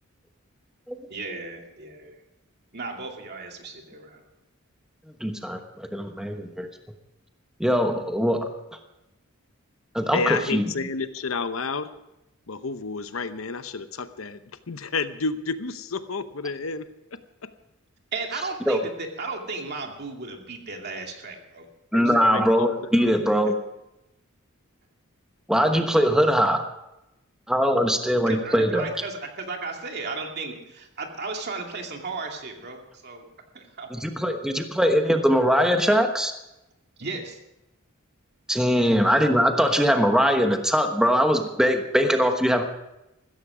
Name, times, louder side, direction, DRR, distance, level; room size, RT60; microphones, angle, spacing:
voice 1, 1.1-2.2 2.7-4.3 18.1-21.7 22.1-22.3 23.4-23.5 28.3-32.8 33.0-33.2 33.5-34.0 37.0-37.4 38.8-39.0, right 3 dB, 50° right, 2 dB, 2.5 m, -35 dB
voice 2, 5.2-6.7 7.6-8.5 9.9-10.6 18.7-18.8 21.9-23.5 25.5-26.6 27.5-28.9 33.9-36.3 38.5-42.6, equal, 5° right, 5 dB, 1.1 m, -21 dB
voice 3, 10.1-11.9 12.5-14.4 14.7-17.5 21.9-22.7 22.9-23.1, left 4 dB, 70° left, 11 dB, 0.9 m, -31 dB
15.5 x 14.0 x 5.0 m, 0.91 s
head